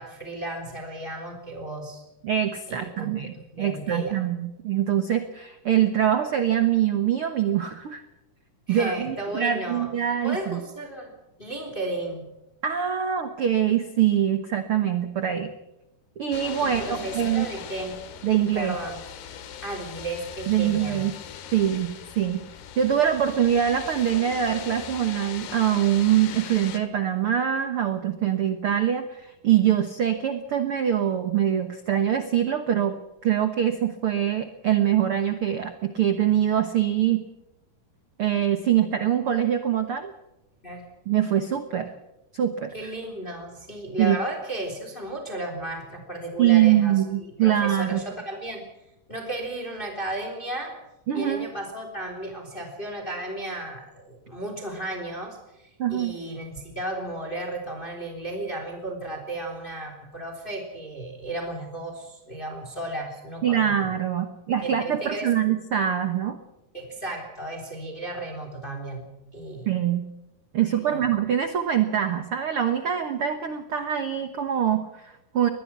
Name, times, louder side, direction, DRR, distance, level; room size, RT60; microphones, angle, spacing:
voice 1, 0.0-2.0 2.7-4.2 8.7-9.9 10.2-11.1 11.4-12.3 16.6-18.0 18.5-19.0 19.6-21.0 40.6-40.9 42.7-47.0 47.4-48.6 49.1-50.8 51.1-55.4 55.9-63.9 64.6-65.3 66.7-69.1 69.3-69.8 70.7-71.1, right 1 dB, 15° left, 4 dB, 3.5 m, -34 dB
voice 2, 2.2-8.0 8.7-10.6 12.6-15.5 16.2-17.5 18.2-18.8 20.5-21.1 21.5-22.5 22.8-33.0 33.2-37.2 38.2-40.1 41.1-41.9 42.3-42.9 44.0-44.2 46.4-48.0 51.1-51.5 55.8-56.1 63.4-66.4 69.7-70.0 70.5-75.5, right 10 dB, 80° right, 8 dB, 1.2 m, -24 dB
sound 1, 16.3-26.8, left 9 dB, 85° left, 3.7 m, -40 dB
22.5 x 20.0 x 6.1 m, 0.91 s
omnidirectional pair, 4.5 m